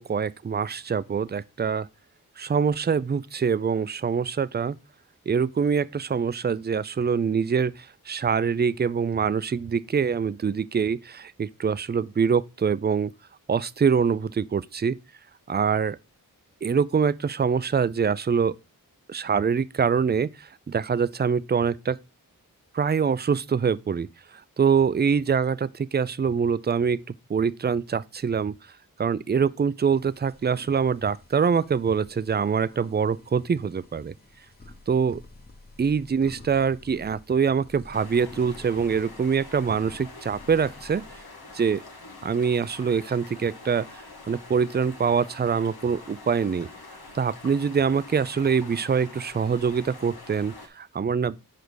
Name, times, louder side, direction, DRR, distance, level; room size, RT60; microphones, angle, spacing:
voice 1, 0.0-1.9 2.4-4.8 5.3-13.1 13.5-15.0 15.5-16.0 16.6-18.6 19.1-22.0 22.7-24.1 24.6-27.0 27.3-28.5 29.0-34.1 34.9-35.2 35.8-41.0 41.5-41.8 42.2-43.9 44.3-46.7 47.1-51.5, right 6 dB, 30° right, 0.4 m, -24 dB
sound 1, 29.9-41.2, left 2 dB, 25° left, 1.2 m, -50 dB
sound 2, 37.9-50.7, left 3 dB, 90° left, 1.5 m, -45 dB
5.2 x 5.1 x 6.2 m
wide cardioid pair, 60°, 36 cm